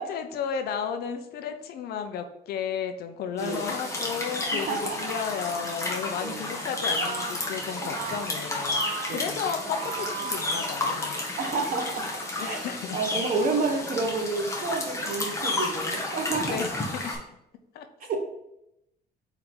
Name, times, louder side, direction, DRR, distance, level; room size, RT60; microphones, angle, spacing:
voice 1, 0.0-8.8 9.1-11.2 12.4-13.0 16.3-17.0 17.7-17.9, left 7 dB, 70° left, 7 dB, 0.7 m, -33 dB
sound 1, 3.4-17.1, left 2 dB, 15° left, 1.4 m, -32 dB
voice 2, 3.4-3.7 4.5-5.0 6.2-6.5 7.8-7.9 9.1-9.5 11.4-12.6 12.9-16.6 18.0-18.2, right 3 dB, 55° right, 3 dB, 1.3 m, -30 dB
Brass instrument, 6.7-11.2, right 8 dB, 70° right, 0.7 m, -38 dB
4.6 x 3.8 x 5.5 m, 0.84 s
cardioid pair, 110°, 17 cm